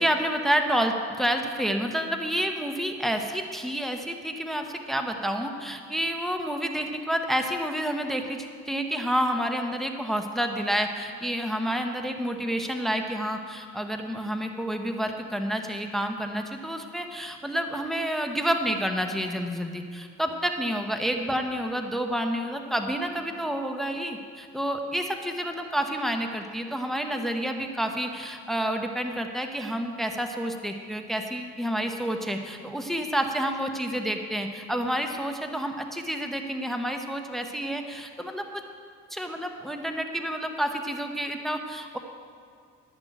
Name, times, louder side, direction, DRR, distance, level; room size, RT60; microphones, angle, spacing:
voice 1, 0.0-38.6 39.1-42.0, equal, ahead, 4 dB, 0.9 m, -29 dB
11.5 x 6.0 x 9.0 m, 2.1 s
cardioid pair, 90°, 30 cm